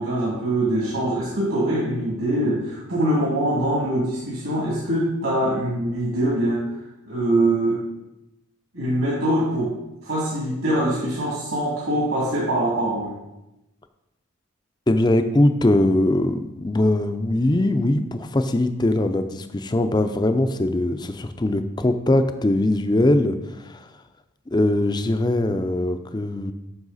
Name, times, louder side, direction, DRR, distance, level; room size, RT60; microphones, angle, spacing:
voice 1, 0.0-6.7 7.1-7.8 8.7-9.8 10.0-13.1, right 1 dB, 70° right, -6 dB, 2.4 m, -23 dB
voice 2, 14.9-23.9 24.5-26.5, left 1 dB, 20° left, 9 dB, 0.4 m, -21 dB
9.6 x 6.4 x 4.1 m, 0.94 s
head